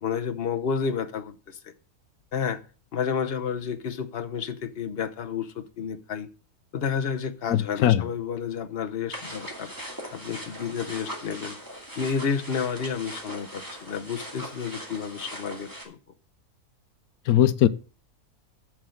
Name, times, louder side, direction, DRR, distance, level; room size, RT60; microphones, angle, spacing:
voice 1, 0.0-1.7 2.3-2.6 2.9-6.3 6.7-9.7 10.1-11.6 12.0-16.0, left 6 dB, 45° left, 1.0 m, -30 dB
voice 2, 7.5-8.0 17.3-17.7, left 11 dB, 80° left, 1.2 m, -20 dB
sound 1, 9.1-15.8, equal, 15° right, 2.4 m, -40 dB
7.3 x 6.2 x 7.8 m
omnidirectional pair, 1.6 m